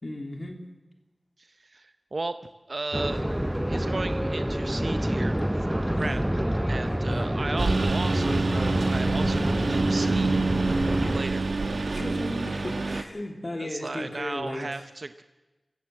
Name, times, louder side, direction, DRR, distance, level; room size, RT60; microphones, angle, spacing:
voice 1, 0.0-0.6 5.9-6.2 6.9-7.3 11.9-14.8, left 1 dB, 40° left, 4 dB, 3.0 m, -35 dB
voice 2, 1.4-2.4 2.7-3.3 3.7-6.2 6.7-10.3 11.0-11.5 13.6-15.2, right 3 dB, 55° right, 11 dB, 0.8 m, -35 dB
sound 1, 2.9-11.2, equal, 10° right, 0.6 m, -27 dB
Engine, 7.6-13.0, right 3 dB, 80° right, 1.2 m, -27 dB
24.5 x 15.5 x 7.7 m, 1.2 s
wide cardioid pair, 65°, 0 cm